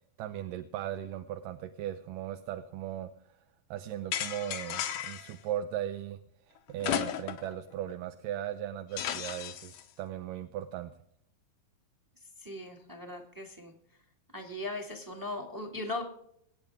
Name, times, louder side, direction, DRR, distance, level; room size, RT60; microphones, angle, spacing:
voice 1, 0.2-3.1 3.7-6.2 6.5-10.9, right 11 dB, 75° right, 8 dB, 2.2 m, -37 dB
sound 1, 4.1-5.3 6.8-7.5 7.9-8.0 9.0-9.8, left 10 dB, 70° left, 2.3 m, -34 dB
voice 2, 12.4-13.7 14.3-16.0, left 2 dB, 10° right, 3 dB, 1.2 m, -38 dB
24.5 x 8.8 x 3.6 m, 0.73 s
omnidirectional pair, 4.1 m